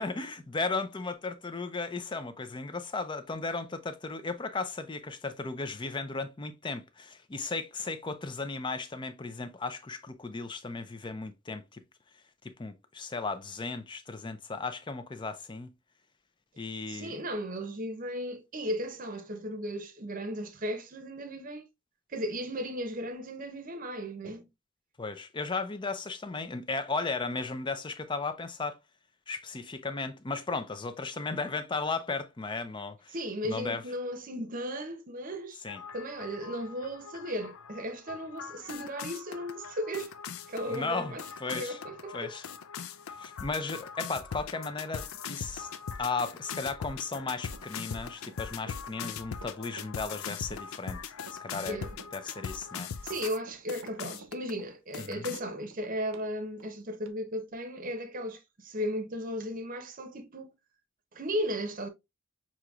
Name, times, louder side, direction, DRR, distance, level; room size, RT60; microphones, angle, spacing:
voice 1, 0.0-11.8 12.4-15.7 16.6-17.2 25.0-28.8 29.3-33.1 33.4-33.8 35.6-35.8 40.7-41.2 41.4-41.8 42.1-42.4 43.2-45.7 46.0-51.0 51.3-51.8 52.1-52.9 55.0-55.3, left 3 dB, 20° left, 0.5 m, -35 dB
voice 2, 16.9-21.7 22.1-24.5 33.1-35.6 35.9-40.1 40.5-41.2 41.5-42.3 51.7-52.0 53.0-60.5 61.1-61.9, equal, 40° right, 0.8 m, -36 dB
sound 1, 35.7-53.4 53.7-54.5 54.9-55.4, left 7 dB, 80° left, 0.5 m, -41 dB
Run, 47.1-56.3 56.6-56.7 57.1-57.2, right 3 dB, 80° right, 0.7 m, -51 dB
6.2 x 2.9 x 2.3 m
head